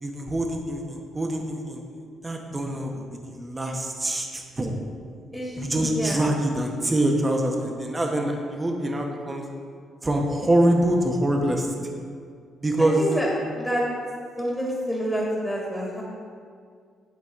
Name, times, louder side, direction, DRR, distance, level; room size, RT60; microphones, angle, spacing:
voice 1, 0.0-1.8 2.2-4.7 5.6-9.4 10.0-11.7 12.6-13.0, right 1 dB, 20° right, 2 dB, 1.0 m, -25 dB
voice 2, 5.3-6.2 12.8-13.3 13.6-13.8 14.4-16.0, equal, 5° left, -5 dB, 1.8 m, -28 dB
11.0 x 4.0 x 3.7 m, 2.2 s
cardioid pair, 90°, 0 cm